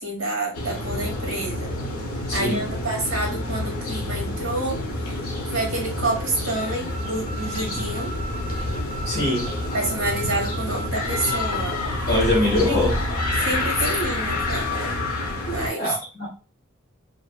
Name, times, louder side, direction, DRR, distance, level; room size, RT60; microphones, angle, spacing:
voice 1, 0.0-1.7 2.3-4.8 5.5-8.1 9.7-11.8 12.6-12.8 13.4-14.7 15.5-16.0, right 2 dB, 65° right, 0 dB, 1.1 m, -28 dB
sound 1, 0.5-15.7, left 2 dB, 80° left, 0.6 m, -28 dB
voice 2, 2.3-2.7 9.0-9.5 12.1-13.0 15.8-16.3, left 1 dB, 50° left, -6 dB, 1.0 m, -22 dB
sound 2, 6.5-11.4, right 3 dB, 35° left, 1.4 m, -38 dB
2.5 x 2.5 x 2.2 m, 0.33 s
head